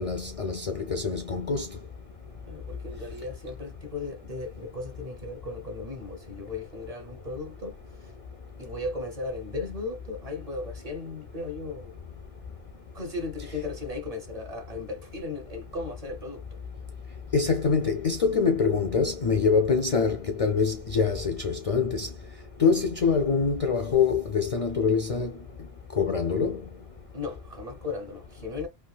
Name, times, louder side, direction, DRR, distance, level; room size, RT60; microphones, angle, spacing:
voice 1, 0.0-1.7 17.3-22.1 22.6-25.3 26.0-26.6, left 5 dB, 55° left, 0.4 m, -24 dB
voice 2, 2.4-7.7 8.0-8.1 8.6-12.0 12.9-16.4 27.1-28.7, left 3 dB, 35° right, 0.8 m, -36 dB
3.5 x 2.4 x 2.3 m
omnidirectional pair, 1.2 m